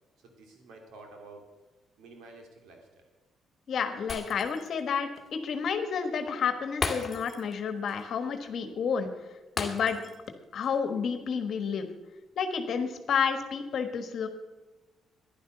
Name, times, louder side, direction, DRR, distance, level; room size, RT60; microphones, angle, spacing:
voice 1, 0.2-1.4 2.0-3.0, right 3 dB, 85° right, 3 dB, 2.9 m, -50 dB
voice 2, 3.7-9.1 9.6-10.0 10.5-11.9 12.4-14.3, left 6 dB, 60° left, 8 dB, 1.4 m, -30 dB
Shatter, 4.1-4.8 5.2-5.3 6.8-7.6 7.9-8.0 9.6-10.3 10.6-10.8, left 4 dB, 30° left, 2.1 m, -35 dB
11.0 x 11.0 x 6.7 m, 1.1 s
cardioid pair, 90°, 0 cm